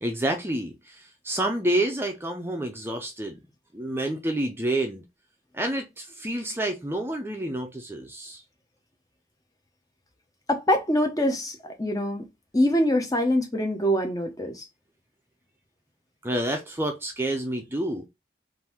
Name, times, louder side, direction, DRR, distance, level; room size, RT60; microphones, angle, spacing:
voice 1, 0.0-3.4 3.7-5.0 5.5-8.4 16.2-18.1, right 1 dB, 15° right, 0.6 m, -29 dB
voice 2, 10.5-12.2 12.5-14.7, left 1 dB, 20° left, 0.8 m, -24 dB
3.8 x 2.7 x 4.5 m
head